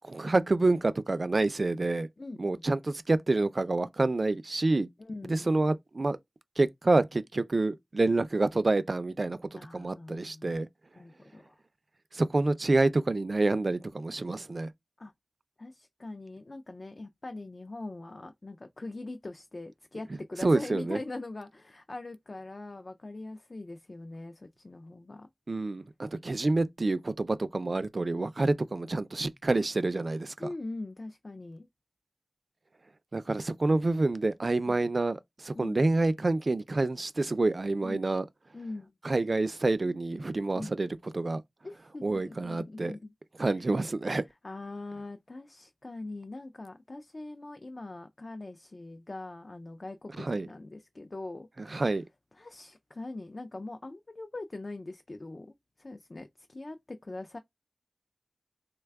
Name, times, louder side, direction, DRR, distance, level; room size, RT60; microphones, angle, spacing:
voice 1, 0.0-2.1 2.4-4.9 5.3-6.2 6.6-10.7 12.1-14.7 20.4-21.0 25.5-30.5 33.1-38.2 39.0-40.9 41.1-41.4 42.0-43.0 43.4-44.2 50.2-50.5 51.7-52.0, right 2 dB, 55° right, 0.3 m, -28 dB
voice 2, 2.2-2.6 5.0-5.6 9.6-10.6 10.9-11.6 15.0-15.1 15.6-25.3 30.4-31.7 35.5-35.8 37.8-38.0 38.5-38.9 40.5-40.7 41.6-43.1 43.5-43.7 44.4-51.9 52.3-57.4, left 2 dB, 50° left, 0.3 m, -42 dB
3.2 x 2.2 x 3.4 m
wide cardioid pair, 70°, 0 cm